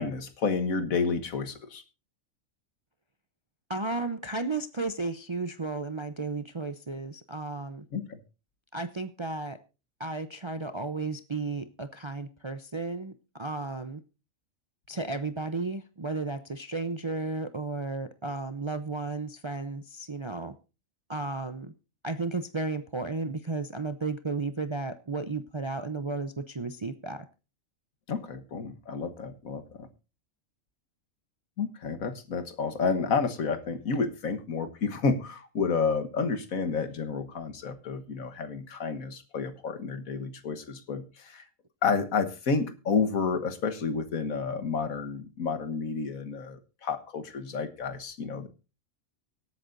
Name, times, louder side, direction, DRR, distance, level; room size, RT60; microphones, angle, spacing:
voice 1, 0.0-1.8 7.9-8.2 28.1-29.9 31.6-41.4 41.8-48.5, left 5 dB, 80° left, 9 dB, 1.7 m, -30 dB
voice 2, 3.7-7.9 8.7-9.6 10.0-14.0 14.9-20.5 21.1-21.7 22.0-27.3, right 3 dB, 35° right, 11 dB, 0.5 m, -33 dB
25.0 x 8.4 x 2.6 m, 0.31 s
omnidirectional pair, 1.4 m